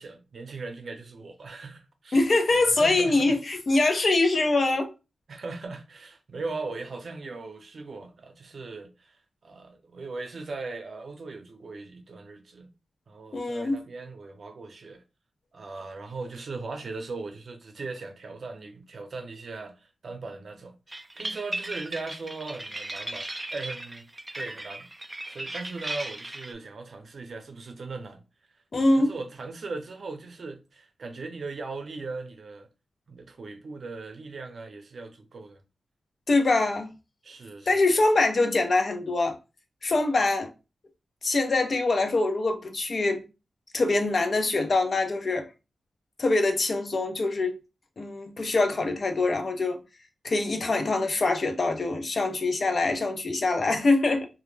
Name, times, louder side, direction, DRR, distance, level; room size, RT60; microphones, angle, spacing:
voice 1, 0.0-2.2 2.5-3.3 5.3-12.7 13.1-15.0 15.5-20.7 21.2-24.1 24.3-24.9 25.3-28.2 28.8-32.7 33.1-35.6 37.2-37.8, right 3 dB, 65° right, 0.6 m, -39 dB
voice 2, 2.1-4.9 13.3-13.8 28.7-29.1 36.3-36.9 37.7-39.4 39.8-40.5 41.2-43.3 43.7-45.5 46.2-47.6 48.0-49.8 50.2-54.3, left 2 dB, 55° left, 0.5 m, -24 dB
sound 1, 20.9-26.5, right 2 dB, 20° right, 0.3 m, -36 dB
2.2 x 2.1 x 3.1 m
cardioid pair, 65°, 0 cm